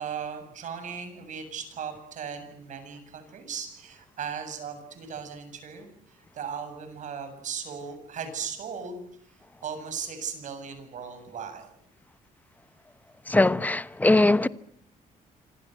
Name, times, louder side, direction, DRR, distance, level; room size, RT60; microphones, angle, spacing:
voice 1, 0.0-11.8, right 7 dB, 60° right, 7.7 m, -37 dB
voice 2, 13.3-14.5, left 2 dB, 10° left, 1.1 m, -21 dB
26.5 x 26.0 x 8.0 m
cardioid pair, 120°, 14 cm